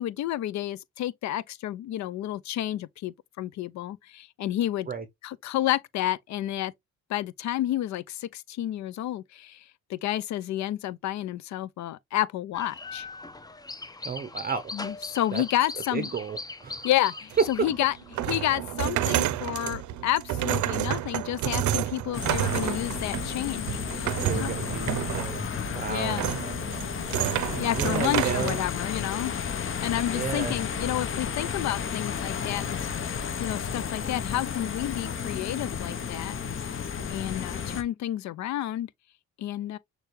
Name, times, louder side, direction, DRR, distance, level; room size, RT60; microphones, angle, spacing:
voice 1, 0.0-4.9 5.2-6.7 7.1-9.6 9.9-13.1 14.7-16.1 16.8-17.9 18.3-24.5 25.9-26.3 27.6-29.4 29.8-36.4 37.1-38.9 39.4-39.8, left 13 dB, 65° left, 0.5 m, -30 dB
sound 1, 12.5-18.3, left 3 dB, 15° left, 0.5 m, -40 dB
voice 2, 14.0-14.6 15.3-15.4 15.9-16.9 24.0-26.2 27.7-28.6 30.1-30.6, right 6 dB, 30° right, 0.6 m, -33 dB
sound 2, 17.3-28.6, right 12 dB, 75° right, 0.6 m, -30 dB
sound 3, 22.1-37.8, left 7 dB, 45° left, 0.8 m, -32 dB
6.5 x 2.3 x 3.1 m
cardioid pair, 90°, 30 cm